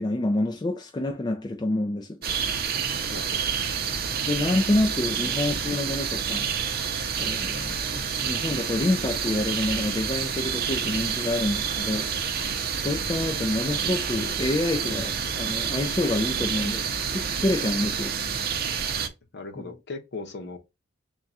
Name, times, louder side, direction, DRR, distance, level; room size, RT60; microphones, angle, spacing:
voice 1, 0.0-2.2 4.2-6.5 7.2-12.1 12.8-18.2 19.6-19.7, left 2 dB, 20° left, 0.4 m, -27 dB
sound 1, 2.2-19.1, right 6 dB, 50° right, 0.6 m, -28 dB
voice 2, 3.1-3.4 4.9-5.0 19.3-20.6, left 3 dB, 55° left, 0.9 m, -38 dB
3.7 x 2.3 x 4.1 m
head